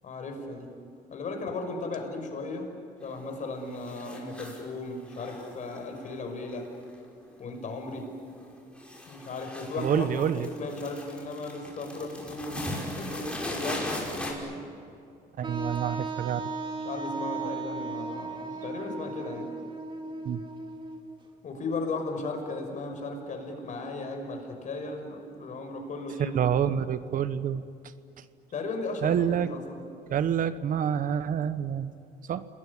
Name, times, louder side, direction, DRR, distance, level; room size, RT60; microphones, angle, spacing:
voice 1, 0.0-0.7 1.1-2.7 3.0-6.7 7.4-8.1 9.1-14.6 16.8-19.5 21.4-26.4 28.5-29.8, left 3 dB, 45° left, 4 dB, 5.8 m, -36 dB
sound 1, 3.0-3.4 3.7-4.7 5.1-7.3 7.6-8.0 8.3-14.3, left 1 dB, 5° left, 5.9 m, -39 dB
voice 2, 9.8-10.5 15.4-16.5 20.2-20.4 26.2-27.6 28.2-28.3 29.0-29.5 30.1-31.9 32.3-32.5, right 8 dB, 55° right, 13 dB, 1.0 m, -27 dB
Wind instrument woodwind instrument, 15.4-21.2, right 3 dB, 30° right, 2.4 m, -36 dB
28.0 x 20.5 x 9.8 m, 2.5 s
cardioid pair, 110°, 17 cm